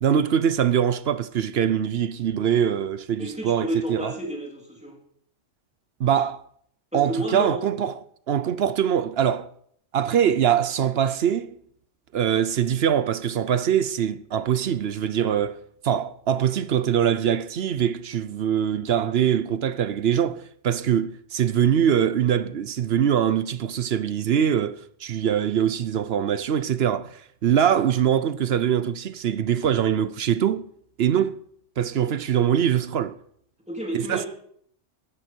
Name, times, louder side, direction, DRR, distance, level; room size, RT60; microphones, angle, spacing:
voice 1, 0.0-4.1 6.0-6.4 6.9-7.9 8.3-9.5 9.9-11.5 12.1-30.7 31.0-31.4 31.8-33.2 33.9-34.3, right 9 dB, 60° right, 0.8 m, -23 dB
voice 2, 3.2-5.0 6.9-7.6 33.7-34.3, right 1 dB, 5° right, 3.4 m, -30 dB
14.5 x 12.5 x 4.5 m
omnidirectional pair, 1.3 m